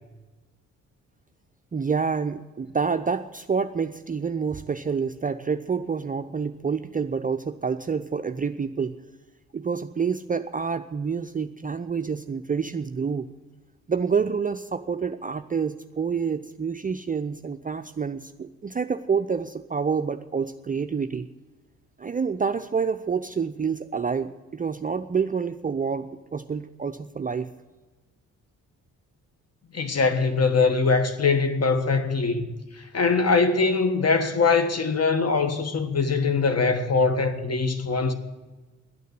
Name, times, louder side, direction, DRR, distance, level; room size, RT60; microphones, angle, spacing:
voice 1, 1.7-9.0 9.5-13.3 13.9-21.3 22.0-27.5, right 5 dB, 20° right, 0.5 m, -28 dB
voice 2, 29.7-32.5 32.9-38.1, left 4 dB, 40° left, 1.5 m, -22 dB
11.0 x 9.3 x 9.7 m
hypercardioid pair, 45°, 40 cm